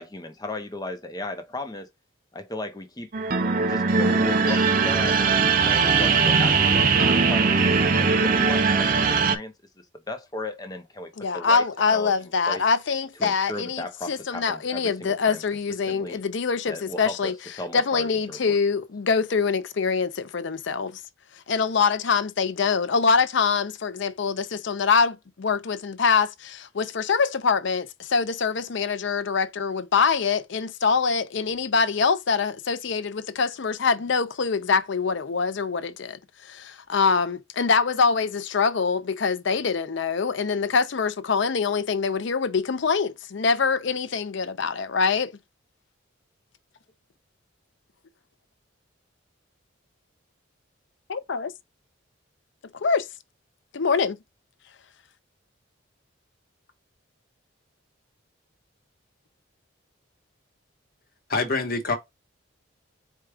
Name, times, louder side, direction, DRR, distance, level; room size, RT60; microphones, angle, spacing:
voice 1, 0.0-1.9 2.3-3.1 3.6-11.7 11.9-12.1 12.5-12.6 13.2-15.4 15.9-16.2 16.7-18.6, left 1 dB, 20° left, 0.7 m, -35 dB
sound 1, 3.1-9.4, right 5 dB, 40° right, 0.6 m, -20 dB
voice 2, 11.2-17.3 17.7-21.0 21.5-45.3 51.1-51.5 52.7-53.1 53.7-54.2, left 5 dB, 60° left, 0.5 m, -24 dB
voice 3, 61.3-62.0, left 3 dB, 45° left, 1.1 m, -25 dB
4.5 x 2.3 x 4.8 m
head